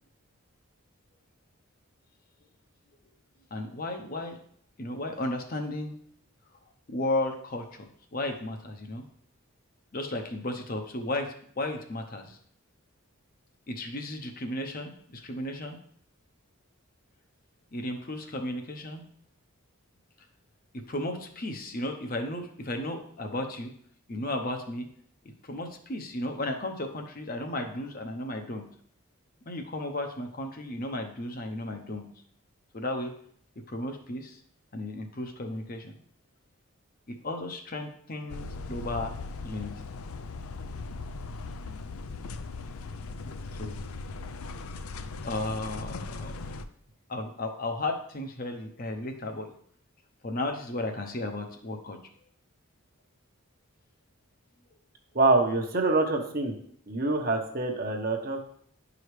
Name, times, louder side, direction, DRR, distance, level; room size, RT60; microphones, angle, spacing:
voice 1, 3.5-4.4 4.8-6.0 6.9-9.0 9.9-12.4 13.7-15.8 17.7-19.0 20.7-23.7 24.1-24.9 25.5-28.6 29.5-32.1 32.7-33.1 33.7-34.4 34.7-35.9 37.1-39.2 39.4-39.7 43.6-43.8 45.2-46.3 47.1-49.5 50.2-52.0, left 1 dB, 40° left, 4 dB, 0.7 m, -34 dB
sound 1, 38.3-46.7, left 3 dB, 80° left, 0.5 m, -39 dB
voice 2, 55.1-56.5 56.9-58.4, right 3 dB, 45° right, 3 dB, 0.9 m, -25 dB
10.5 x 4.9 x 3.2 m, 0.63 s
head